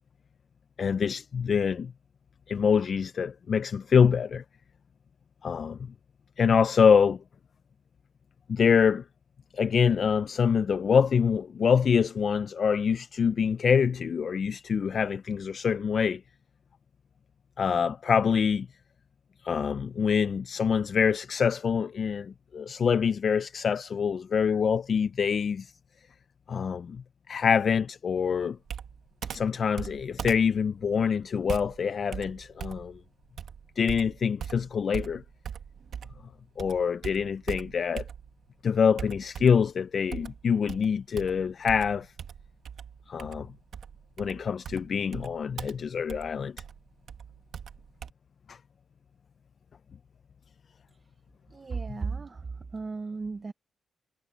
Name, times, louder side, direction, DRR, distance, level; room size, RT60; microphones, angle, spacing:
voice 1, 0.8-1.9 2.5-4.4 5.4-5.9 6.4-7.2 8.5-9.0 9.5-16.2 17.6-18.7 19.4-25.7 26.5-28.6 29.3-33.0 33.8-35.2 36.6-38.0 38.6-42.1 43.1-43.5 44.2-46.5 48.5-48.6, left 6 dB, 45° left, 0.3 m, -25 dB
Computer keyboard, 28.7-36.3 36.6-38.5 39.0-39.7 40.1-48.1, right 8 dB, 65° right, 1.3 m, -40 dB
voice 2, 51.5-53.5, right 4 dB, 25° right, 0.5 m, -35 dB
wide cardioid pair, 180°, 0 cm